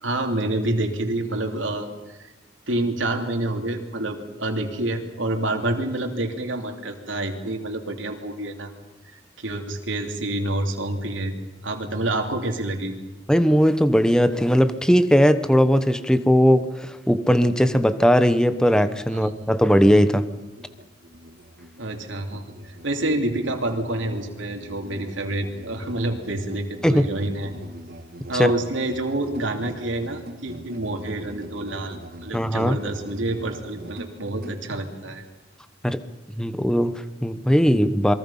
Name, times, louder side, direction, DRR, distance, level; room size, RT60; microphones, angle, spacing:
voice 1, 0.0-1.9 2.2-2.3 2.7-8.7 9.4-11.3 11.6-12.9 19.1-19.3 21.8-27.5 28.3-35.2, right 1 dB, 85° right, 3 dB, 3.0 m, -28 dB
voice 2, 13.3-20.2 26.8-27.1 28.4-28.5 32.3-32.8 35.8-36.0 36.4-38.1, equal, 5° left, 11 dB, 1.0 m, -19 dB
Musical instrument, 20.1-34.6, equal, 55° right, 1.6 m, -42 dB
28.0 x 23.0 x 5.7 m, 1.1 s
head